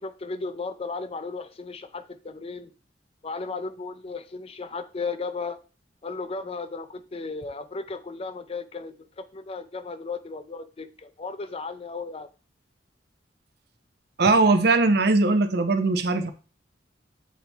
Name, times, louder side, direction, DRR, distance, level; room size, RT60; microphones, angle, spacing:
voice 1, 0.0-2.7 3.2-5.6 6.0-12.3, left 4 dB, 35° left, 0.5 m, -35 dB
voice 2, 14.2-16.3, right 3 dB, 60° right, 0.7 m, -20 dB
7.4 x 4.1 x 3.4 m
head